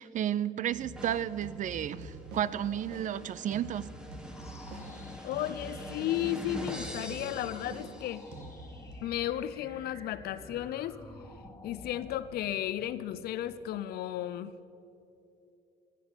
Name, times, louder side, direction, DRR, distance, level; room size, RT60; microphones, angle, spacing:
voice 1, 0.0-3.9, right 10 dB, 50° right, 19 dB, 0.5 m, -32 dB
sound 1, 0.7-8.9, right 1 dB, 90° right, 2.1 m, -47 dB
sound 2, 1.0-8.5, equal, 5° right, 1.5 m, -45 dB
sound 3, 4.2-13.7, left 2 dB, 15° left, 1.8 m, -51 dB
voice 2, 5.2-8.2 9.0-11.0 11.6-14.5, left 12 dB, 70° left, 14 dB, 0.5 m, -34 dB
14.5 x 8.4 x 7.9 m, 2.8 s
cardioid pair, 110°, 17 cm